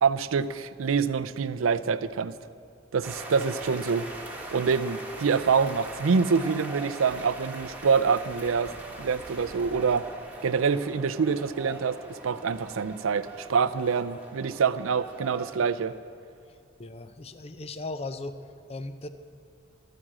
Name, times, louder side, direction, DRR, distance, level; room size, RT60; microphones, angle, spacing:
voice 1, 0.0-2.4 2.9-4.1 4.5-8.7 9.0-10.0 10.4-15.9, right 5 dB, 85° right, 14 dB, 0.5 m, -26 dB
sound 1, 3.0-16.0, right 1 dB, 10° right, 1.5 m, -42 dB
voice 2, 16.5-18.4 18.7-19.1, left 2 dB, 30° left, 10 dB, 0.5 m, -38 dB
12.5 x 9.7 x 7.5 m, 2.3 s
head